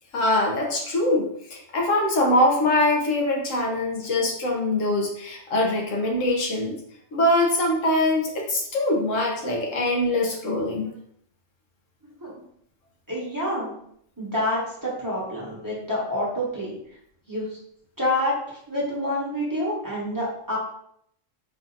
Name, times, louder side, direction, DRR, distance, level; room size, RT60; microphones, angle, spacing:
voice 1, 0.1-6.8 7.1-10.9, left 1 dB, 90° left, 0 dB, 1.2 m, -23 dB
voice 2, 13.1-13.7 14.2-16.7 17.3-17.6 18.0-18.4 18.7-20.6, left 1 dB, 15° right, -7 dB, 1.0 m, -27 dB
4.7 x 2.7 x 2.4 m, 0.70 s
omnidirectional pair, 1.3 m